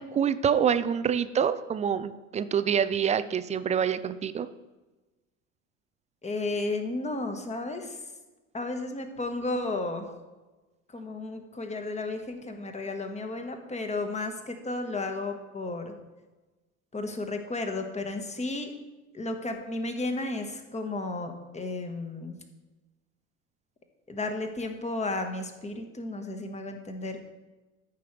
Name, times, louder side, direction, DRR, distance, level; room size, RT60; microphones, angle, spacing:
voice 1, 0.0-4.5, right 8 dB, 20° right, 13 dB, 0.4 m, -26 dB
voice 2, 6.2-8.0 8.5-10.1 10.9-15.9 16.9-18.7 19.1-22.4 24.1-27.2, left 2 dB, 15° left, 5 dB, 1.5 m, -33 dB
13.5 x 5.7 x 3.3 m, 1.2 s
figure-of-eight pair, 70°, 40 cm